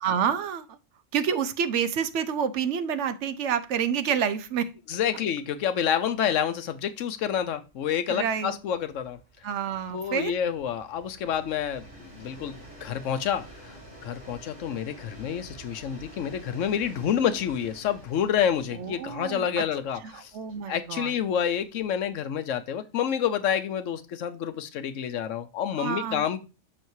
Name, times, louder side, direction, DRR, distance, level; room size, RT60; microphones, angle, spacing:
voice 1, 0.0-0.8 1.1-4.7 8.1-8.6 9.4-10.3 18.7-19.6 20.1-21.2 25.8-26.2, right 7 dB, 70° right, 12 dB, 0.9 m, -28 dB
Train, 4.2-4.3 4.6-4.7 5.0-22.4, right 1 dB, 50° right, 3.2 m, -50 dB
voice 2, 4.9-9.2 9.9-20.3 20.7-26.4, left 8 dB, 75° left, 10 dB, 1.0 m, -28 dB
6.4 x 6.1 x 2.6 m, 0.30 s
omnidirectional pair, 1.3 m